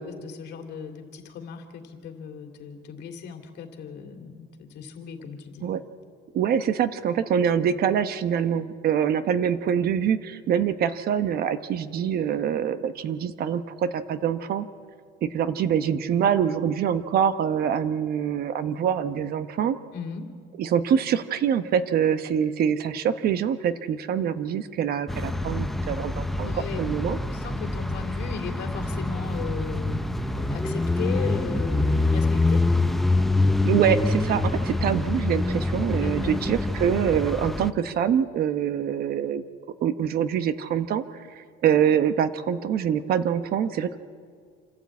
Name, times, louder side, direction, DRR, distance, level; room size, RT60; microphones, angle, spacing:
voice 1, 0.0-5.7 19.9-20.3 26.4-26.8 27.3-32.6 35.9-36.4, left 6 dB, 55° left, 5 dB, 2.6 m, -37 dB
voice 2, 6.3-14.7 15.2-19.8 20.6-26.5 26.8-27.2 33.6-39.4 39.8-41.0 41.4-44.0, right 8 dB, 50° right, 11 dB, 1.0 m, -25 dB
sound 1, 25.1-37.7, left 2 dB, ahead, 0.7 m, -25 dB
27.5 x 12.0 x 8.5 m, 2.1 s
cardioid pair, 140°, 20 cm